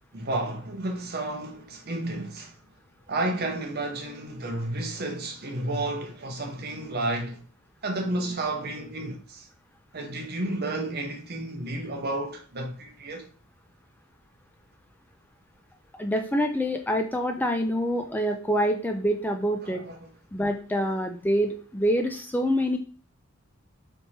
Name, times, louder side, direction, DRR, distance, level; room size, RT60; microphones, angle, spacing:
voice 1, 0.1-2.5 3.1-7.4 7.8-9.5 9.9-13.3 19.6-20.0, right 2 dB, 50° right, 0.9 m, -31 dB
voice 2, 16.0-19.8 20.3-22.8, equal, 10° left, 0.4 m, -26 dB
3.5 x 3.0 x 4.2 m
head